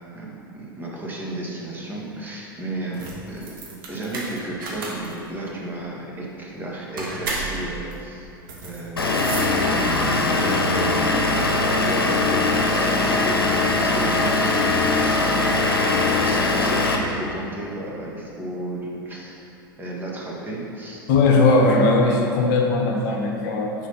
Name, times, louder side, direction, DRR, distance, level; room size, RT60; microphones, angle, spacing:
voice 1, 0.1-3.5 3.9-8.3 8.6-11.3 11.7-15.3 16.1-19.4 19.8-21.0 23.1-23.2, right 1 dB, 15° right, -4 dB, 1.6 m, -33 dB
sound 1, 2.9-10.2, right 2 dB, 65° right, 1.4 m, -34 dB
Vehicle / Engine, 9.0-17.0, left 2 dB, 80° left, 0.8 m, -21 dB
voice 2, 21.1-23.7, left 3 dB, 55° left, 1 dB, 0.9 m, -18 dB
6.5 x 4.6 x 5.8 m, 2.7 s
figure-of-eight pair, 80°, 12 cm